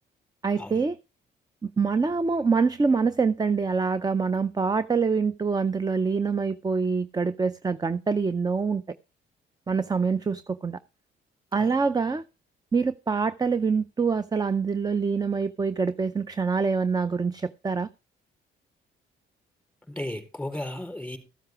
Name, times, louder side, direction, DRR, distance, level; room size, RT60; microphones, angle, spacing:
voice 1, 0.4-1.0 1.6-8.8 9.7-10.8 11.5-12.2 12.7-17.9, right 5 dB, 20° right, 0.5 m, -25 dB
voice 2, 19.9-21.2, left 1 dB, 5° left, 4.2 m, -34 dB
14.5 x 7.9 x 4.6 m
cardioid pair, 90°, 20 cm